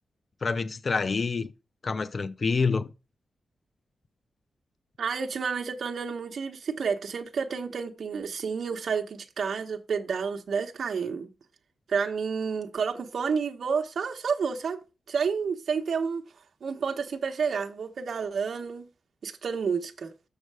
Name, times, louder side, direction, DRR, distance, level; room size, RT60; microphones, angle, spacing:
voice 1, 0.4-1.5 1.8-2.9, left 4 dB, 40° left, 0.5 m, -27 dB
voice 2, 5.0-11.3 11.9-14.8 15.1-16.3 16.6-18.9 19.2-20.1, right 5 dB, 60° right, 1.0 m, -30 dB
6.5 x 6.4 x 4.8 m
wide cardioid pair, 135°, 0 cm